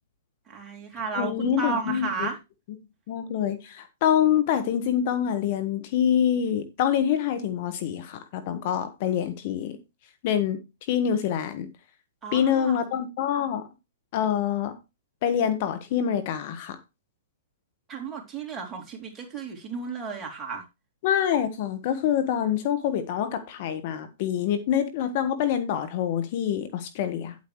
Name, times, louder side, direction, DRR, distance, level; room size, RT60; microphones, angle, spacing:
voice 1, 0.5-2.4 12.2-12.8 17.9-20.6, right 5 dB, 20° right, 3.7 m, -33 dB
voice 2, 1.2-2.3 3.1-9.8 10.2-10.6 10.9-11.7 12.3-13.7 14.1-14.8 15.2-16.8 21.0-27.4, left 9 dB, 50° left, 1.5 m, -26 dB
10.5 x 8.6 x 3.2 m
hypercardioid pair, 125°, 0 cm